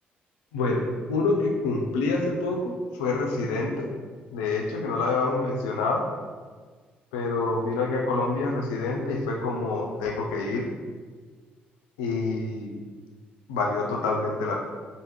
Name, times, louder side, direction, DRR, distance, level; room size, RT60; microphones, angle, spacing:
voice 1, 0.5-0.8 1.1-3.9 4.3-6.0 7.1-10.7 12.0-12.7 13.5-14.6, left 3 dB, 75° left, 1 dB, 0.4 m, -27 dB
3.4 x 2.7 x 3.0 m, 1.5 s
figure-of-eight pair, 45°, 5 cm